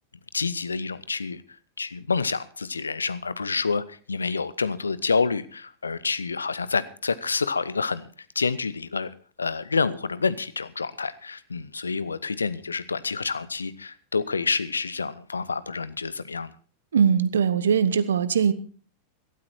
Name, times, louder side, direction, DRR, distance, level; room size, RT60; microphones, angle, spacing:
voice 1, 0.3-1.4 1.8-8.1 8.4-9.1 9.4-16.5, left 4 dB, 75° left, 17 dB, 0.7 m, -28 dB
voice 2, 16.9-18.5, right 7 dB, 65° right, 17 dB, 0.9 m, -21 dB
17.0 x 12.5 x 4.4 m, 0.41 s
figure-of-eight pair, 90°, 0 cm